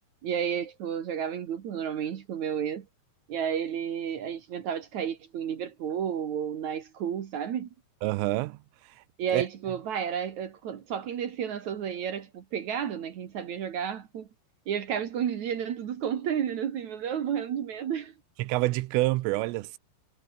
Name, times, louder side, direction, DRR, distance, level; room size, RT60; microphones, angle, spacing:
voice 1, 0.2-2.9 3.3-7.7 9.2-14.3 14.7-18.1, right 8 dB, 60° right, 1.9 m, -31 dB
voice 2, 8.0-8.6 9.3-9.4 18.4-19.8, right 20 dB, 90° right, 3.4 m, -27 dB
omnidirectional pair, 5.7 m